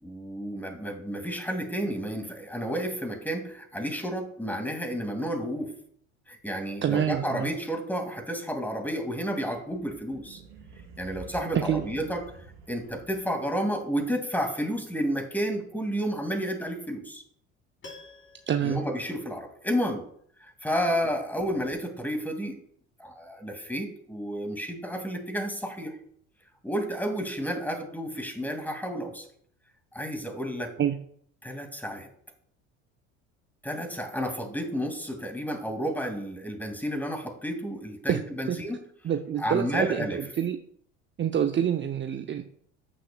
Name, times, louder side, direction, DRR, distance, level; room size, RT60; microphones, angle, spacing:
voice 1, 0.0-5.7 6.3-10.4 11.0-12.2 12.7-17.2 18.6-20.0 20.4-22.6 23.0-26.0 26.6-29.3 29.9-30.7 31.4-32.1 33.6-38.8 39.4-40.2, equal, 5° left, 5 dB, 2.4 m, -31 dB
voice 2, 6.8-7.5 11.5-11.8 18.5-18.8 30.8-31.0 38.1-38.2 38.5-38.6 39.0-40.6 41.2-42.4, right 9 dB, 30° right, 6 dB, 0.7 m, -27 dB
sound 1, 9.4-13.5, right 5 dB, 85° right, 3.7 m, -48 dB
Piano, 17.8-19.9 20.2-20.3, left 2 dB, 35° left, 3.6 m, -51 dB
14.5 x 6.1 x 2.3 m, 0.65 s
hypercardioid pair, 70°, 36 cm